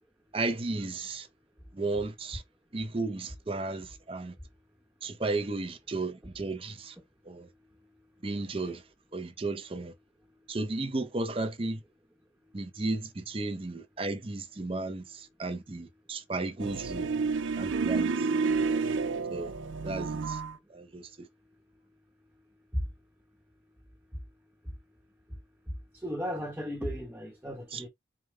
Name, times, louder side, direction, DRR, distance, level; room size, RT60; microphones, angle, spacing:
voice 1, 0.3-1.3 1.7-2.4 2.7-4.3 5.0-7.0 7.3-7.5 8.2-8.8 9.1-9.9 10.5-11.8 12.5-17.1 17.6-18.4 19.3-19.5 19.8-20.4 20.7-21.3 27.7-27.8, right 2 dB, 30° right, 0.5 m, -34 dB
sound 1, 16.6-20.5, right 4 dB, 80° right, 0.4 m, -30 dB
voice 2, 25.7-27.9, equal, 10° right, 0.9 m, -35 dB
4.8 x 2.1 x 3.2 m
head